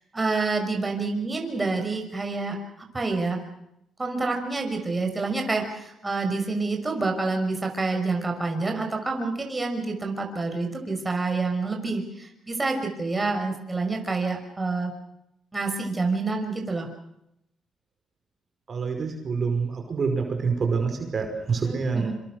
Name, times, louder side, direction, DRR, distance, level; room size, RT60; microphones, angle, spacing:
voice 1, 0.1-3.4 4.0-14.9 15.5-16.9 21.6-22.1, right 3 dB, 20° right, 3 dB, 6.0 m, -28 dB
voice 2, 18.7-22.1, right 5 dB, 45° right, 4 dB, 5.4 m, -26 dB
26.5 x 26.0 x 6.5 m, 0.81 s
cardioid pair, 90°, 0 cm